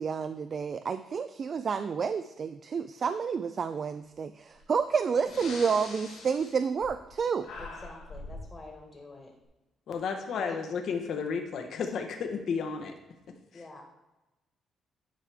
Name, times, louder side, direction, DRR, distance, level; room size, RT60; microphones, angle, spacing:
voice 1, 0.0-7.5, right 6 dB, 50° right, 11 dB, 0.3 m, -30 dB
Breathing, 4.6-4.7 5.2-7.2 7.4-8.5, left 3 dB, 80° left, 1.6 m, -43 dB
voice 2, 7.6-9.3 10.3-10.6 13.5-13.8, left 3 dB, 30° left, 1 dB, 1.5 m, -46 dB
voice 3, 9.9-12.9, left 5 dB, 65° left, 5 dB, 1.0 m, -32 dB
10.5 x 4.8 x 3.4 m, 1.0 s
cardioid pair, 90°, 0 cm